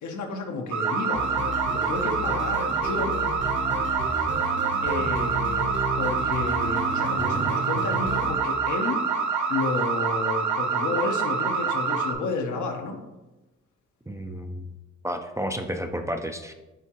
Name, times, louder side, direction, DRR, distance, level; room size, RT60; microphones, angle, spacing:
voice 1, 0.0-1.3 1.7-3.2 4.8-5.7 6.0-9.0 9.5-13.0, left 3 dB, 75° left, 3 dB, 1.0 m, -31 dB
sound 1, 0.7-12.1, right 5 dB, 70° right, 0.8 m, -26 dB
sound 2, 1.1-8.3, right 2 dB, 40° right, 0.9 m, -32 dB
voice 2, 14.1-14.6 15.0-16.5, equal, 10° right, 5 dB, 0.4 m, -31 dB
8.9 x 3.5 x 3.0 m, 1.1 s
cardioid pair, 80°, 30 cm